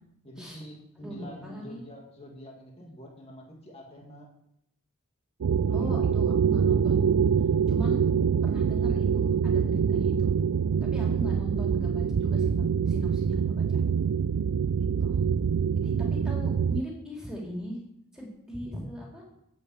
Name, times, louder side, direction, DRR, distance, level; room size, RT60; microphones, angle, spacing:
voice 1, 0.2-4.3 5.7-6.3 11.3-11.4, equal, 30° left, -1 dB, 2.1 m, -46 dB
voice 2, 1.0-1.8 5.7-7.1 7.7-8.0 8.4-10.3 10.9-13.8 15.0-15.2 15.8-17.8 18.1-19.2, equal, 5° right, -3 dB, 3.7 m, -39 dB
sound 1, 5.4-16.8, right 7 dB, 85° right, 0.4 m, -25 dB
8.7 x 8.5 x 8.3 m, 0.78 s
head